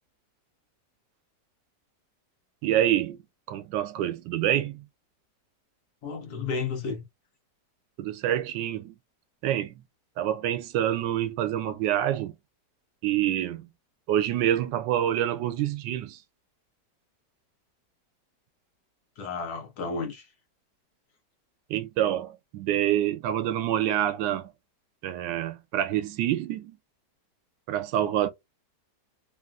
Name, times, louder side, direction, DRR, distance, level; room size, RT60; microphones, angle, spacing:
voice 1, 2.6-3.2 3.5-4.8 8.0-9.0 9.4-9.8 10.2-12.3 13.0-13.7 14.1-16.2 21.7-24.5 25.0-26.8 27.7-28.3, right 11 dB, 85° right, 1.3 m, -27 dB
voice 2, 6.0-7.0 19.2-20.3, left 4 dB, 65° left, 1.3 m, -32 dB
3.2 x 2.4 x 2.3 m
omnidirectional pair, 1.9 m